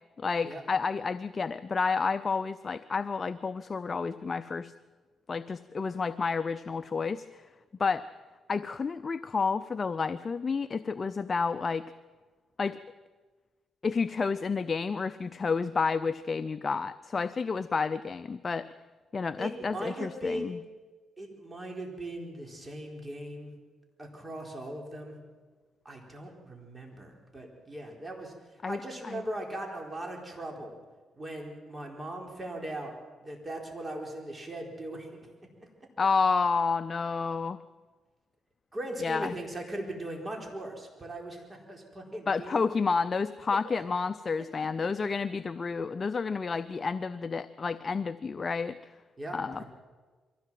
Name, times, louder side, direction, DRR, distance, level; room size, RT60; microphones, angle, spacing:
voice 1, 0.2-4.7 5.3-7.5 7.8-8.1 8.5-11.9 12.6-12.8 13.8-18.7 19.1-20.6 28.6-29.2 36.0-37.6 39.0-39.4 42.3-48.8 49.3-49.6, left 5 dB, 40° left, 12 dB, 0.6 m, -30 dB
voice 2, 19.4-20.6 21.2-23.6 24.0-25.2 25.8-28.3 28.6-30.8 31.2-32.9 33.2-35.1 38.7-42.6 43.5-43.8 49.2-49.6, right 1 dB, 25° right, 1 dB, 4.3 m, -39 dB
22.5 x 16.5 x 7.5 m, 1.4 s
cardioid pair, 90°, 0 cm